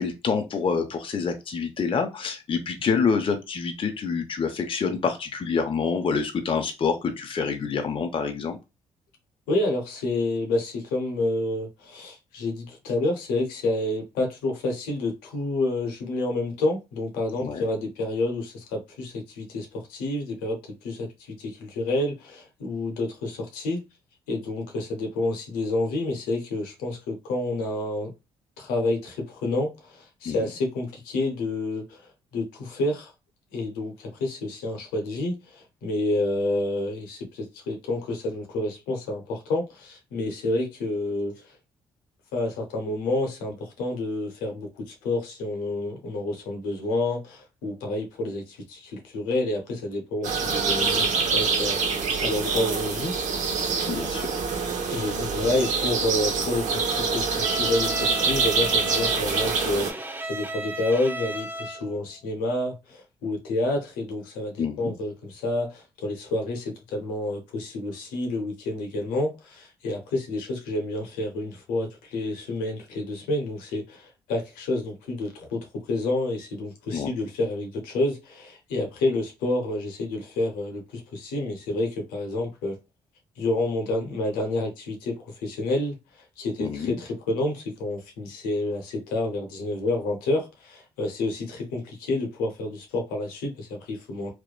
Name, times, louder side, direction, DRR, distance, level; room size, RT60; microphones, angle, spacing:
voice 1, 0.0-8.6 17.4-17.6 30.3-30.4 53.8-54.2 64.6-64.9 76.9-77.1 86.6-87.0, left 5 dB, 35° left, 0.5 m, -27 dB
voice 2, 9.5-23.8 24.3-28.1 28.6-33.1 33.5-41.6 42.3-53.1 54.6-82.8 83.4-94.3, left 2 dB, 80° left, 0.7 m, -29 dB
sound 1, 50.2-59.9, right 5 dB, 60° right, 0.7 m, -25 dB
Bowed string instrument, 57.4-62.0, right 1 dB, 15° right, 0.5 m, -34 dB
2.9 x 2.1 x 2.3 m
hypercardioid pair, 50°, 15 cm